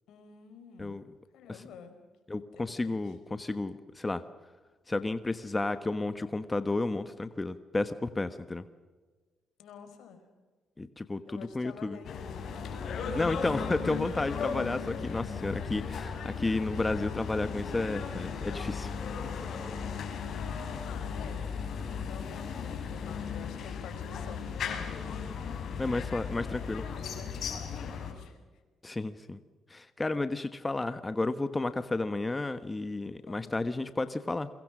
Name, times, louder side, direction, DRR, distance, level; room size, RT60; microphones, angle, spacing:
voice 1, 0.1-1.0 1.3-1.9 2.5-3.1 9.6-10.2 11.3-12.6 20.8-21.5 22.1-25.3 27.0-28.4 33.3-33.7, left 7 dB, 80° left, 8 dB, 5.0 m, -50 dB
voice 2, 2.3-4.2 4.9-8.6 10.8-12.0 13.1-19.0 25.8-26.8 28.8-29.4 29.7-34.5, left 2 dB, 20° left, 10 dB, 1.3 m, -32 dB
sound 1, 12.0-28.1, left 6 dB, 65° left, 5.5 m, -36 dB
30.0 x 23.5 x 6.3 m, 1.3 s
cardioid pair, 90°, 0 cm